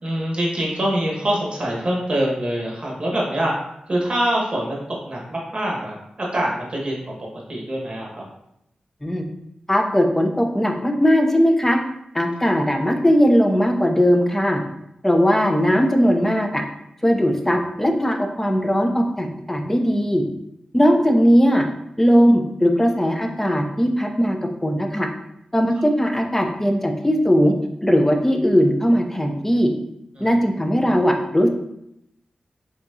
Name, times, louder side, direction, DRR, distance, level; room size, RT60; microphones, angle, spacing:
voice 1, 0.0-3.5 3.9-4.8 5.0-7.1 7.5-8.2 30.2-30.3, right 1 dB, 40° right, -2 dB, 1.4 m, -24 dB
voice 2, 9.7-11.8 12.1-14.6 15.0-16.6 17.0-20.2 20.7-21.7 22.0-25.1 25.5-27.5 27.8-29.7 30.2-31.5, equal, 10° left, 3 dB, 0.6 m, -18 dB
4.5 x 3.6 x 2.7 m, 0.80 s
wide cardioid pair, 70°, 2 cm